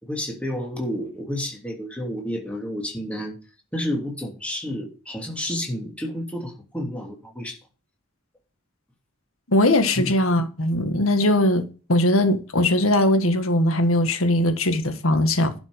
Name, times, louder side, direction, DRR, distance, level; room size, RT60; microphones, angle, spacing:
voice 1, 0.0-3.4 3.7-7.6 10.0-10.1, left 1 dB, 5° left, 3.0 m, -30 dB
voice 2, 9.5-15.5, left 1 dB, 90° left, 1.8 m, -20 dB
11.5 x 6.2 x 5.2 m
head